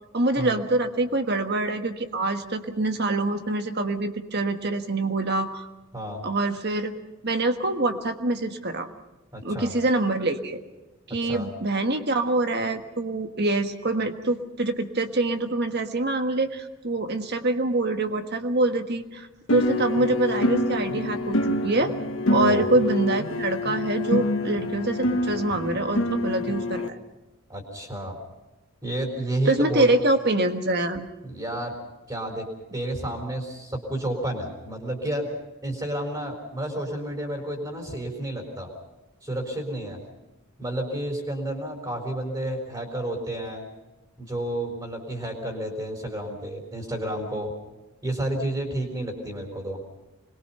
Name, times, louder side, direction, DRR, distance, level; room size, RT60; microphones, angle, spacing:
voice 1, 0.1-5.6 6.2-6.9 7.2-8.9 9.4-10.6 11.1-21.9 22.3-27.0 29.5-31.1, right 2 dB, 45° right, 7 dB, 1.5 m, -25 dB
voice 2, 9.3-9.7 11.2-11.5 22.3-22.7 27.5-28.2 28.8-29.9 31.2-31.7 32.1-32.5 32.7-35.3 35.6-38.7 39.2-40.0 40.6-43.7 44.2-47.5 48.0-49.8, right 1 dB, 20° right, 1 dB, 3.9 m, -31 dB
sound 1, 19.5-26.9, left 1 dB, 65° left, 1.4 m, -26 dB
26.0 x 21.5 x 5.7 m, 1.1 s
head